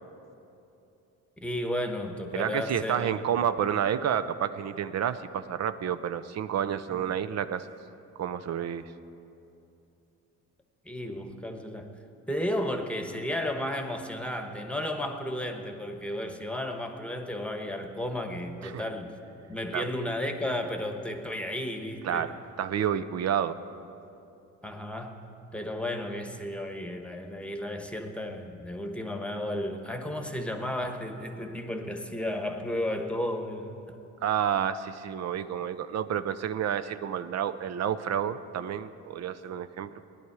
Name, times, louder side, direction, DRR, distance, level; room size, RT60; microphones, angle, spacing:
voice 1, 1.4-3.2 6.9-7.0 10.8-11.9 12.3-19.1 19.5-22.3 24.6-25.3 25.5-33.8, left 1 dB, 5° left, 5 dB, 1.2 m, -33 dB
voice 2, 2.3-7.7 8.2-8.8 18.6-18.8 19.7-19.9 22.0-23.6 34.2-39.9, right 9 dB, 60° right, 11 dB, 0.6 m, -30 dB
18.0 x 11.0 x 4.8 m, 2.8 s
cardioid pair, 90°, 30 cm